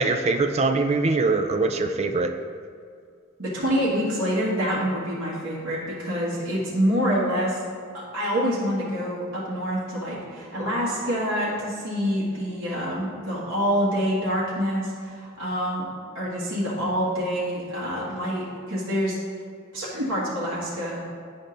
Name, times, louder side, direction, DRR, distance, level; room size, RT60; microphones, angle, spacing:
voice 1, 0.0-2.3, right 3 dB, 30° right, 7 dB, 0.3 m, -22 dB
voice 2, 3.4-7.6 8.1-15.9 16.1-19.2 19.7-21.0, equal, 70° right, -9 dB, 1.6 m, -26 dB
10.0 x 5.1 x 2.6 m, 2.2 s
head